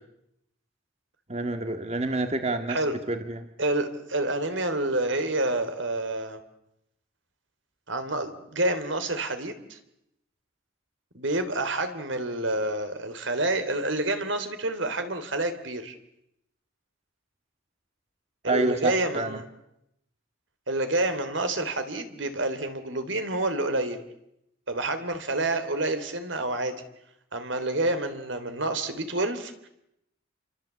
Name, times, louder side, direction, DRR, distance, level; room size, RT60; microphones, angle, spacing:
voice 1, 1.3-2.8 3.1-3.5 18.5-19.4, right 2 dB, 35° right, 7 dB, 1.8 m, -28 dB
voice 2, 3.6-6.4 7.9-9.8 11.1-16.0 18.4-19.4 20.7-24.0 24.7-26.8 27.3-29.7, right 2 dB, 70° right, 9 dB, 3.6 m, -28 dB
29.0 x 24.5 x 8.4 m, 0.81 s
head